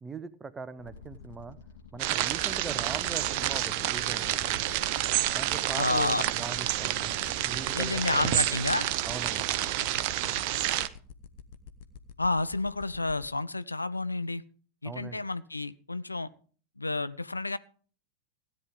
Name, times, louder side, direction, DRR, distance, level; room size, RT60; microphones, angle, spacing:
voice 1, 0.0-1.6 1.9-4.6 5.3-7.1 7.4-8.6 9.1-9.6 14.8-15.2, right 4 dB, 15° right, 12 dB, 0.9 m, -41 dB
sound 1, 0.8-8.8, left 6 dB, 65° left, 6.5 m, -51 dB
sound 2, 2.0-10.9, right 14 dB, 45° right, 0.7 m, -29 dB
sound 3, 2.5-13.3, left 7 dB, 50° left, 1.1 m, -47 dB
voice 2, 5.8-6.2 7.7-8.8 12.2-14.4 14.8-16.3 16.8-17.6, left 2 dB, 80° left, 14 dB, 0.5 m, -30 dB
16.5 x 9.9 x 3.7 m, 0.41 s
figure-of-eight pair, 90°, 0 cm